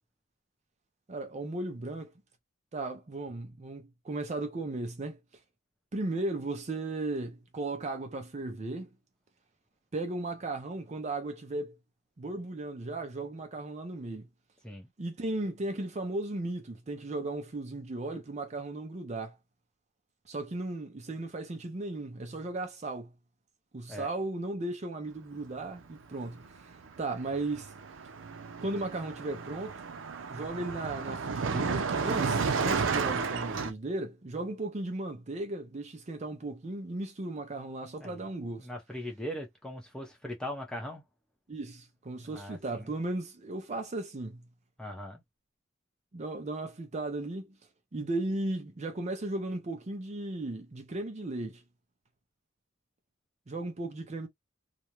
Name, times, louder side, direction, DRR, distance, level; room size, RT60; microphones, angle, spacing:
voice 1, 1.1-2.1 2.7-5.2 5.9-8.9 9.9-11.8 12.2-14.3 15.0-19.4 20.3-23.1 23.7-27.7 28.6-29.8 30.3-38.7 41.5-44.4 46.1-47.5 47.9-51.6 53.5-54.3, right 2 dB, 35° right, 0.5 m, -36 dB
Car passing by, 26.2-26.5 26.7-33.7, right 5 dB, 80° right, 0.5 m, -32 dB
voice 2, 38.6-41.0 42.2-42.9 44.8-45.2, left 1 dB, 5° left, 0.7 m, -40 dB
2.5 x 2.1 x 2.9 m
head